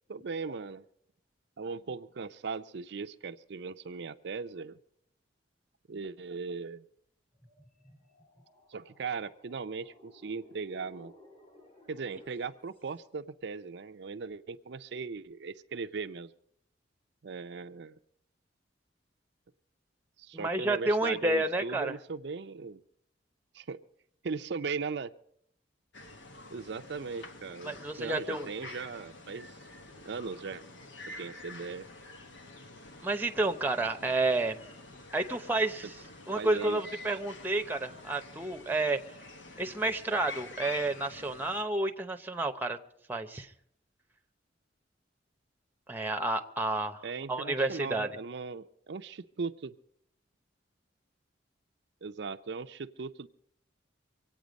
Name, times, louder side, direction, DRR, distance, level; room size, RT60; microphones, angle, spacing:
voice 1, 0.1-0.8 1.6-4.8 5.9-6.8 8.7-11.1 11.9-16.3 17.2-18.0 20.2-22.8 23.5-23.8 24.2-25.1 26.5-29.6 30.0-30.6 31.2-31.9 36.4-36.8 47.0-49.7 52.0-53.3, right 5 dB, 65° right, 8 dB, 0.5 m, -38 dB
sound 1, 7.3-13.1, left 2 dB, 30° left, 5.6 m, -58 dB
voice 2, 20.3-22.0 27.6-28.5 33.0-34.6 35.1-36.0 36.3-39.0 39.6-42.8 43.1-43.5 45.9-48.1, right 2 dB, 10° right, 6 dB, 0.8 m, -30 dB
sound 2, 25.9-41.6, left 2 dB, 80° left, 1.3 m, -48 dB
25.0 x 8.8 x 5.2 m, 0.69 s
head